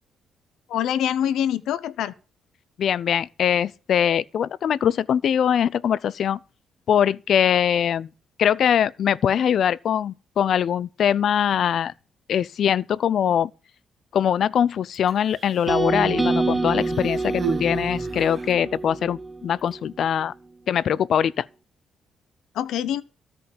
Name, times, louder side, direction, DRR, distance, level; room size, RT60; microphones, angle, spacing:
voice 1, 0.7-2.1 22.5-23.0, left 10 dB, 85° left, 0.8 m, -25 dB
voice 2, 2.8-6.4 6.9-8.1 8.4-11.9 12.3-13.5 14.1-20.3 20.7-21.5, left 9 dB, 65° left, 0.5 m, -22 dB
Human voice, 14.9-15.8 16.7-18.7 19.6-19.7, right 7 dB, 35° right, 1.5 m, -35 dB
sound 1, 15.7-19.8, right 2 dB, 10° right, 0.8 m, -26 dB
13.5 x 5.3 x 8.5 m
cardioid pair, 90°, 0 cm